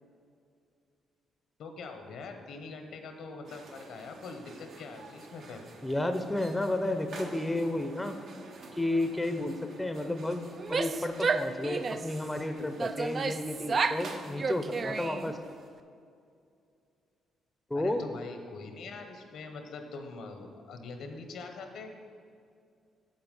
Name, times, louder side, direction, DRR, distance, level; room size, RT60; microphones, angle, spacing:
voice 1, 1.6-5.6 17.7-21.9, left 3 dB, 75° left, 5 dB, 1.2 m, -43 dB
sound 1, 3.4-15.7, right 3 dB, 65° right, 1.0 m, -50 dB
voice 2, 5.8-8.2 8.8-15.4 17.7-18.0, left 1 dB, 10° left, 7 dB, 0.7 m, -32 dB
Female speech woman speaking / Yell, 10.5-12.2 12.8-14.1 14.4-15.4, right 4 dB, 40° right, 0.4 m, -31 dB
8.0 x 8.0 x 5.4 m, 2.3 s
cardioid pair, 90°, 0 cm